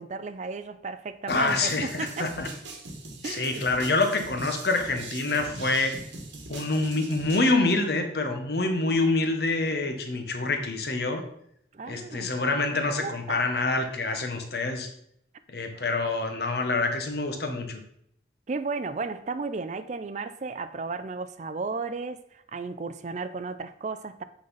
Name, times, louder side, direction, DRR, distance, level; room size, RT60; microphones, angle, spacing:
voice 1, 0.0-2.3 3.2-3.6 11.7-12.3 13.0-13.4 18.5-24.2, right 4 dB, 40° right, 0.4 m, -34 dB
voice 2, 1.3-2.5 3.2-6.0 6.5-11.2 11.8-14.9 15.5-17.8, left 3 dB, 55° left, 1.0 m, -26 dB
sound 1, 1.3-7.5, right 3 dB, 80° right, 1.3 m, -41 dB
8.5 x 4.0 x 4.0 m
head